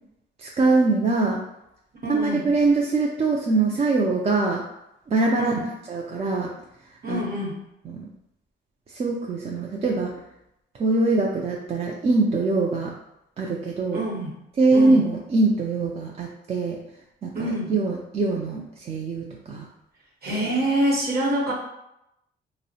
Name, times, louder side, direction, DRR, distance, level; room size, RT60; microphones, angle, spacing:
voice 1, 0.4-1.4 2.1-4.6 5.1-5.6 5.9-6.5 7.1-7.2 7.8-8.0 8.9-10.1 10.8-12.9 13.4-14.0 14.6-16.8 17.2-19.7, right 3 dB, 30° right, -2 dB, 0.4 m, -23 dB
voice 2, 2.0-2.4 5.4-5.6 7.0-7.6 13.9-14.3 14.7-15.0 17.3-17.7 20.2-21.5, right 1 dB, 50° right, -1 dB, 0.9 m, -26 dB
2.7 x 2.0 x 2.7 m, 0.84 s
cardioid pair, 90°, 20 cm